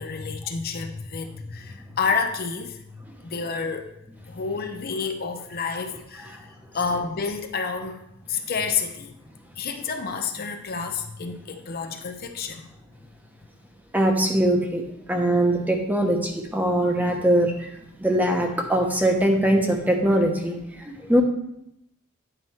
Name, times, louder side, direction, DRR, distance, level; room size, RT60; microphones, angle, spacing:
voice 1, 0.0-3.9 4.3-6.5 6.7-9.1 9.6-12.7, left 5 dB, 50° left, 6 dB, 0.6 m, -29 dB
voice 2, 13.9-14.8 15.1-17.7 18.0-21.2, right 1 dB, 10° right, 2 dB, 0.9 m, -22 dB
9.1 x 4.4 x 4.3 m, 0.80 s
head